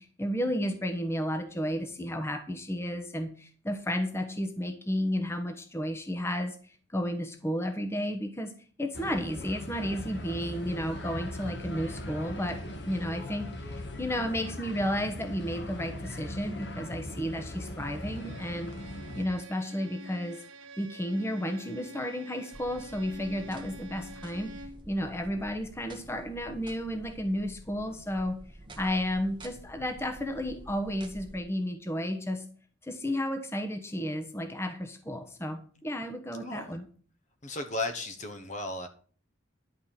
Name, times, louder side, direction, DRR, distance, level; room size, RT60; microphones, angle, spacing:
voice 1, 0.0-6.6 6.9-8.5 8.8-18.7 19.1-20.4 20.8-24.5 24.9-28.4 28.8-32.5 32.8-36.9, equal, 10° left, 5 dB, 1.0 m, -32 dB
sound 1, 8.9-19.3, left 1 dB, 55° left, 1.5 m, -39 dB
Bowed string instrument, 17.9-24.9, right 1 dB, 75° right, 1.6 m, -48 dB
sound 2, 22.5-31.4, right 1 dB, 25° right, 1.1 m, -49 dB
voice 2, 36.4-36.8 37.4-38.9, left 2 dB, 35° left, 6 dB, 1.0 m, -35 dB
11.5 x 4.9 x 7.2 m, 0.43 s
head